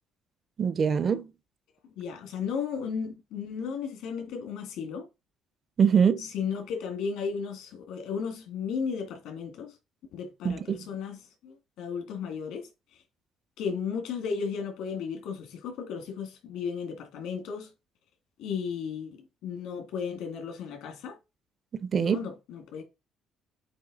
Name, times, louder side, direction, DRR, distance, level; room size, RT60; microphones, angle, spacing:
voice 1, 0.6-1.3 5.8-6.3 10.4-10.9 21.7-22.2, right 7 dB, 30° right, 0.4 m, -24 dB
voice 2, 2.0-5.1 6.2-9.7 10.1-11.2 11.4-12.7 13.6-17.7 18.4-21.2 22.0-22.8, left 6 dB, 75° left, 2.1 m, -34 dB
8.6 x 3.0 x 4.0 m
cardioid pair, 175°, 0 cm